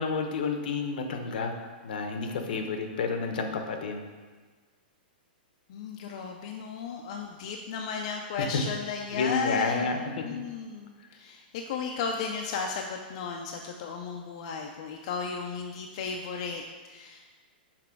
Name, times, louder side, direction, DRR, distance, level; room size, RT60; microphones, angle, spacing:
voice 1, 0.0-1.5 1.8-4.1 8.4-8.6 9.1-10.4, left 4 dB, 60° left, 5 dB, 0.8 m, -30 dB
voice 2, 5.7-17.2, left 5 dB, 40° left, 2 dB, 0.4 m, -35 dB
6.1 x 4.3 x 4.5 m, 1.4 s
supercardioid pair, 175°, 5 cm